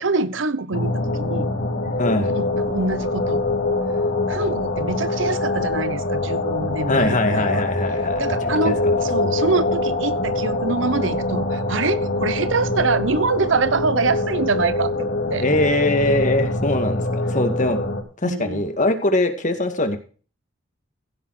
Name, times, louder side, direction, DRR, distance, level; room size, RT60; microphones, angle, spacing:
voice 1, 0.0-1.5 2.2-3.4 4.3-7.6 8.2-15.4 18.2-18.6, right 3 dB, 70° right, 0.9 m, -25 dB
sound 1, 0.7-18.0, left 2 dB, 75° left, 3.3 m, -24 dB
voice 2, 2.0-2.3 6.9-8.3 8.6-8.7 15.4-17.8 18.2-20.0, left 2 dB, 40° left, 2.2 m, -21 dB
16.0 x 7.3 x 4.9 m
head